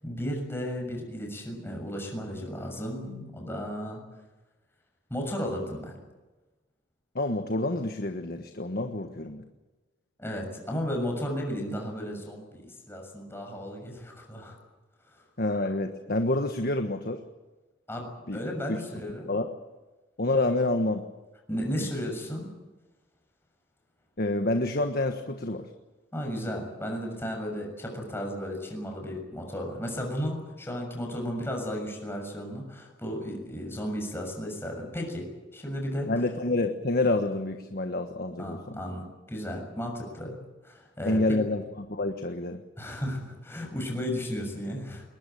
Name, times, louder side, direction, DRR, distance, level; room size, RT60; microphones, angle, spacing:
voice 1, 0.0-4.0 5.1-6.0 10.2-14.6 17.9-19.3 21.5-22.5 26.1-35.3 35.5-36.1 38.4-40.4 40.6-41.4 42.8-45.0, equal, 15° left, 1 dB, 6.8 m, -34 dB
voice 2, 7.1-9.4 15.4-17.2 18.3-18.4 19.3-19.5 20.2-21.0 21.8-21.9 24.2-25.7 36.1-38.8 41.0-42.6, left 2 dB, 55° left, 6 dB, 1.4 m, -28 dB
21.5 x 20.5 x 9.2 m, 1.2 s
head